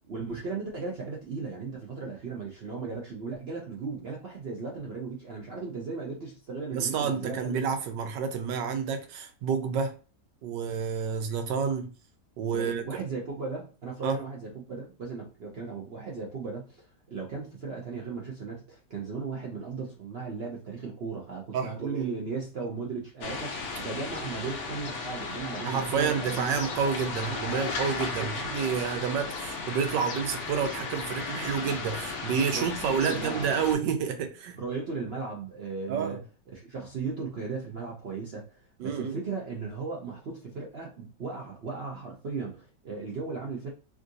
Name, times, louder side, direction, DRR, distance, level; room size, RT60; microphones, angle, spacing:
voice 1, 0.1-7.6 12.5-26.6 28.2-28.3 32.5-32.7 33.0-33.5 34.6-36.2 36.5-43.7, right 4 dB, 60° right, 0.6 m, -36 dB
voice 2, 6.7-10.0 10.4-11.9 12.4-13.0 14.0-14.2 21.5-22.1 25.6-34.6 35.9-36.2 38.8-39.2, right 6 dB, 80° right, 1.3 m, -29 dB
sound 1, 23.2-33.7, left 4 dB, 65° left, 0.7 m, -35 dB
3.6 x 2.5 x 2.6 m
omnidirectional pair, 1.9 m